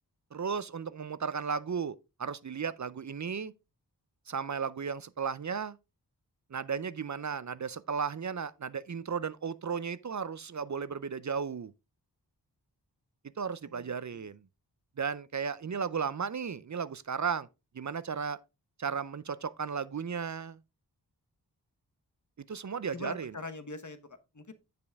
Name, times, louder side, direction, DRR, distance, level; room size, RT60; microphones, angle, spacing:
voice 1, 0.3-3.5 4.3-5.8 6.5-11.7 13.4-14.4 15.0-17.5 17.7-18.4 18.8-20.6 22.4-23.3, right 6 dB, 45° right, 0.5 m, -35 dB
voice 2, 13.6-14.3 22.9-24.5, left 3 dB, 45° left, 1.2 m, -43 dB
9.4 x 5.2 x 3.5 m
wide cardioid pair, 50°, 41 cm